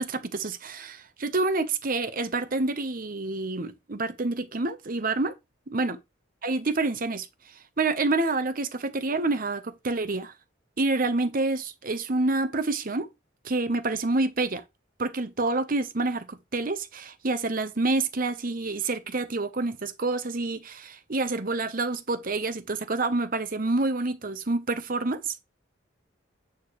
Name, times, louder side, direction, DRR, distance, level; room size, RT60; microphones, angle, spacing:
voice 1, 0.0-5.3 5.7-6.0 6.4-7.3 7.8-10.3 10.8-13.1 13.4-14.6 15.0-25.4, right 3 dB, 45° right, 1.0 m, -28 dB
9.0 x 6.7 x 3.2 m
head